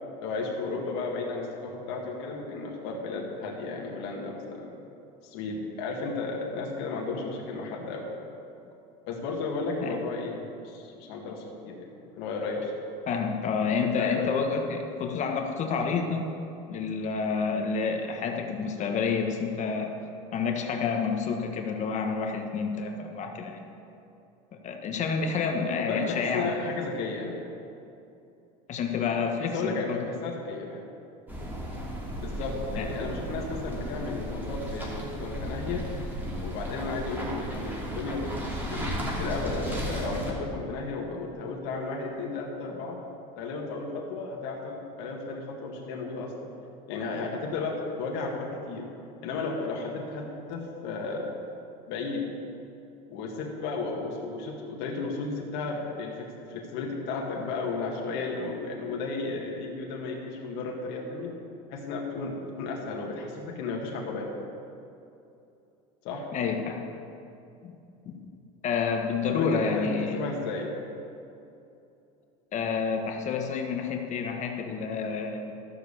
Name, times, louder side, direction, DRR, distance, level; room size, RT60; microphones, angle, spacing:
voice 1, 0.2-4.8 5.2-8.2 9.1-11.9 12.2-12.7 13.8-14.3 18.8-18.9 25.8-27.4 29.4-30.8 32.2-35.9 36.4-43.0 43.4-46.5 46.9-48.9 49.2-51.4 51.9-52.3 53.1-61.3 61.7-64.3 66.0-66.3 69.3-70.7, left 3 dB, 70° left, -1 dB, 1.9 m, -34 dB
voice 2, 13.1-16.3 16.7-19.9 20.3-23.6 24.5-26.7 28.7-30.0 32.8-32.9 66.3-66.8 67.6-67.8 68.0-68.2 68.6-70.2 72.5-75.5, left 5 dB, 45° left, 4 dB, 1.4 m, -29 dB
sound 1, 31.3-40.3, equal, 10° right, 2.9 m, -34 dB
13.0 x 7.5 x 6.8 m, 2.7 s
supercardioid pair, 120°, 18 cm